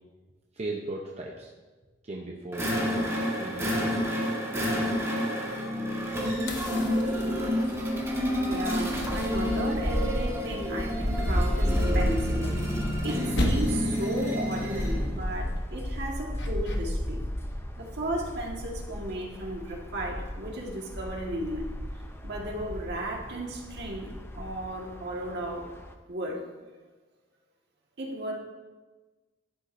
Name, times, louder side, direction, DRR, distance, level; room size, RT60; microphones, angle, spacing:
voice 1, 0.5-1.5 2.0-4.0, right 2 dB, 35° right, -1 dB, 0.8 m, -38 dB
sound 1, 2.5-15.1, equal, 15° right, 1.7 m, -29 dB
voice 2, 6.4-6.8 7.2-7.6 7.9-17.2 17.8-21.7 22.2-24.1 24.3-25.7 26.1-26.4 28.0-28.3, right 1 dB, 60° right, -1 dB, 1.8 m, -35 dB
sound 2, 6.5-7.8 9.0-10.2 12.0-13.1 13.4-14.0 16.4-16.8, left 1 dB, 65° left, 1.2 m, -33 dB
sound 3, 6.9-25.9, equal, 15° left, 0.6 m, -34 dB
11.5 x 9.5 x 2.7 m, 1.3 s
head